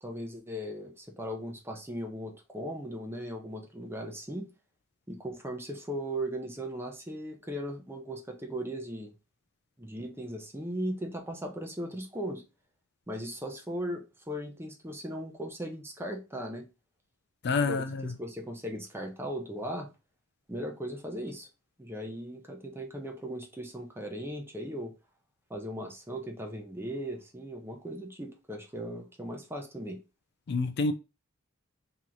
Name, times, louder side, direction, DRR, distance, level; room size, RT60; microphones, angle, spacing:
voice 1, 0.0-4.5 5.1-9.1 9.8-12.4 13.1-16.6 17.6-17.8 18.2-19.9 20.5-21.5 21.8-24.9 25.5-30.0, equal, 10° right, 0.8 m, -38 dB
voice 2, 17.4-18.1 30.5-30.9, left 3 dB, 55° left, 0.4 m, -28 dB
3.0 x 3.0 x 3.8 m
head